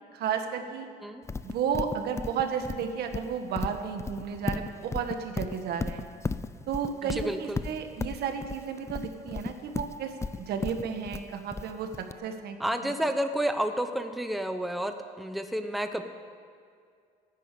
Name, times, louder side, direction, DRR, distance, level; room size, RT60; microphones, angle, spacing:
voice 1, 0.1-0.9 1.4-6.0 6.7-10.1 10.4-11.9 12.2-12.6 12.8-12.9, right 7 dB, 70° right, 6 dB, 1.7 m, -32 dB
Livestock farm animals working animals, 1.3-12.1, left 4 dB, 15° left, 0.4 m, -34 dB
voice 2, 7.0-7.6 12.6-16.0, right 1 dB, ahead, 7 dB, 0.9 m, -30 dB
14.0 x 10.5 x 8.4 m, 2.2 s
cardioid pair, 110°, 17 cm